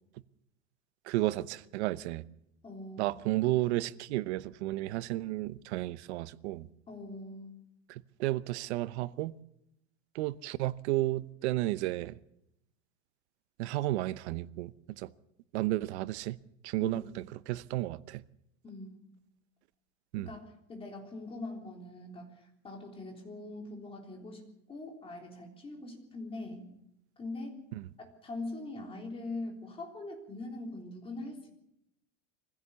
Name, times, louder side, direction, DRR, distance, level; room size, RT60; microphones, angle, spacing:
voice 1, 1.1-2.2 3.0-6.7 7.9-9.3 10.1-12.2 13.6-14.7 15.0-15.1 15.5-16.4 16.6-18.2 20.1-20.3, right 17 dB, 80° right, 0.9 m, -32 dB
voice 2, 2.6-3.1 6.9-7.6 16.8-17.1 18.6-19.0 20.2-20.4 20.7-26.7 27.2-27.6 28.0-31.5, left 2 dB, 15° left, 3.6 m, -42 dB
24.0 x 16.0 x 7.0 m
supercardioid pair, 160°, 33 cm